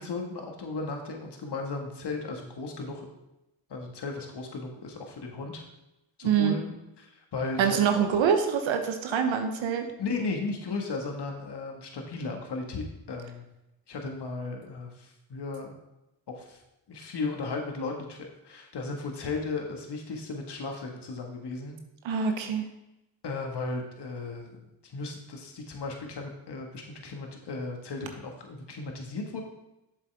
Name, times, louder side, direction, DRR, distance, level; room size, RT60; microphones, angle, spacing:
voice 1, 0.0-3.1 3.7-5.6 6.2-6.7 7.1-8.1 10.0-13.4 13.9-15.7 16.3-16.6 16.9-21.8 22.1-22.4 23.2-24.6 24.8-29.4, left 3 dB, 60° left, 2 dB, 1.7 m, -35 dB
voice 2, 6.2-6.6 7.6-9.9 22.0-22.6, right 7 dB, 70° right, 6 dB, 0.9 m, -25 dB
7.4 x 7.2 x 3.4 m, 0.94 s
supercardioid pair, 45°, 47 cm